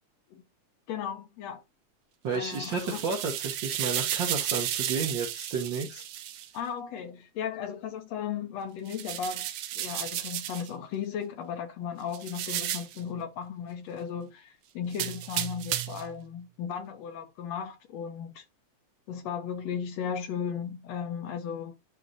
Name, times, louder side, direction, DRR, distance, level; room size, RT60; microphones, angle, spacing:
voice 1, 0.9-1.6 2.3-3.0 6.5-9.5 9.7-18.4 19.1-21.7, left 7 dB, 70° left, 1.8 m, -36 dB
voice 2, 2.2-6.0, right 5 dB, 55° right, 1.3 m, -32 dB
sound 1, 2.3-6.5 8.9-10.7 12.1-13.0 14.9-16.1, right 12 dB, 80° right, 1.3 m, -33 dB
11.5 x 3.8 x 2.7 m
omnidirectional pair, 3.5 m